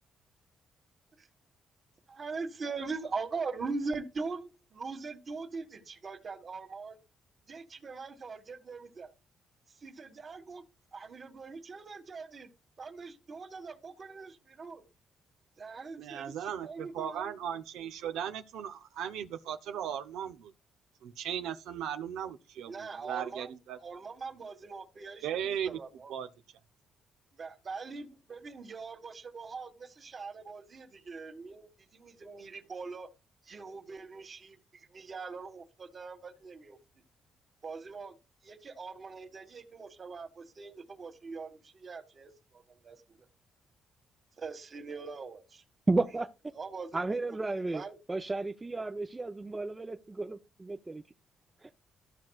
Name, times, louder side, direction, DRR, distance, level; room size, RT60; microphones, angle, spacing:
voice 1, 2.1-7.0 7.5-9.1 9.8-10.6 10.9-12.5 12.8-14.8 15.6-17.3 22.6-23.5 23.8-25.3 25.6-26.1 27.4-33.1 33.4-36.8 37.6-38.2 38.4-43.2 44.4-45.6 46.5-47.0 47.6-48.0, right 4 dB, 40° right, 1.7 m, -42 dB
voice 2, 16.0-20.5 21.0-23.8 25.2-25.8 26.1-26.3, right 9 dB, 90° right, 0.6 m, -37 dB
voice 3, 45.9-46.3 46.9-47.8 48.1-51.0 51.6-51.7, right 2 dB, 20° right, 0.6 m, -32 dB
14.0 x 6.1 x 2.4 m
cardioid pair, 90°, 0 cm